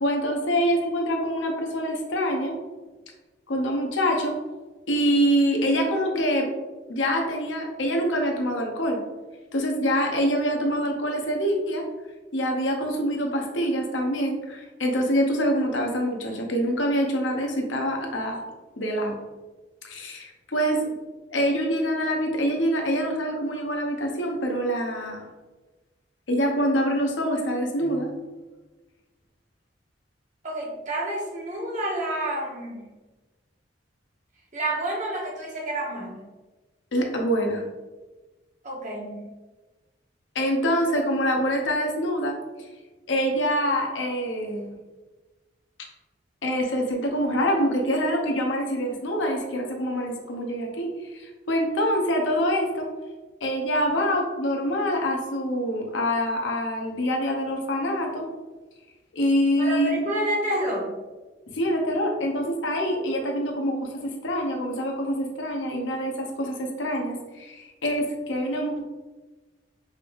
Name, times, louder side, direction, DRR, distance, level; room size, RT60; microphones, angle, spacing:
voice 1, 0.0-2.5 3.5-4.4 4.9-6.5 6.9-9.0 9.5-11.8 12.3-18.4 18.8-19.2 19.8-20.9 21.3-25.3 26.3-28.2 36.9-37.7 40.3-42.4 43.1-44.8 46.4-52.9 53.4-58.3 59.1-60.1 61.5-68.8, equal, 85° left, 2 dB, 0.9 m, -25 dB
voice 2, 30.4-32.8 34.5-36.2 38.6-39.2 59.6-60.9, right 1 dB, 40° right, -3 dB, 1.2 m, -29 dB
5.2 x 3.5 x 2.5 m, 1.2 s
head